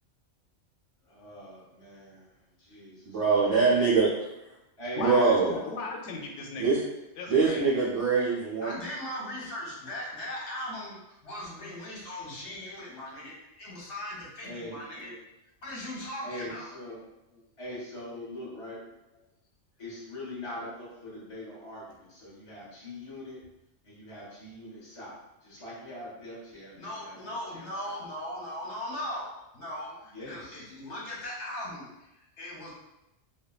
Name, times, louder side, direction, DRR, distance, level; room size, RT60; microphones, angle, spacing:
voice 1, 1.0-2.3 2.6-3.0 3.3-3.5 4.8-5.4 14.4-14.8 16.2-17.0 17.6-18.8 19.8-23.4 23.8-28.0 30.1-30.7, left 1 dB, 30° left, -8 dB, 1.0 m, -42 dB
voice 2, 3.1-4.1 5.0-5.5 6.6-6.8 7.3-8.7, right 4 dB, 50° right, -8 dB, 0.4 m, -23 dB
voice 3, 5.0-6.8 7.2-7.6, left 3 dB, 90° left, 1 dB, 0.9 m, -36 dB
voice 4, 8.5-15.2 15.6-17.0 17.3-17.4 18.0-18.6 26.7-32.7, left 1 dB, 75° left, -4 dB, 1.2 m, -39 dB
3.5 x 2.1 x 2.2 m, 0.92 s
omnidirectional pair, 1.2 m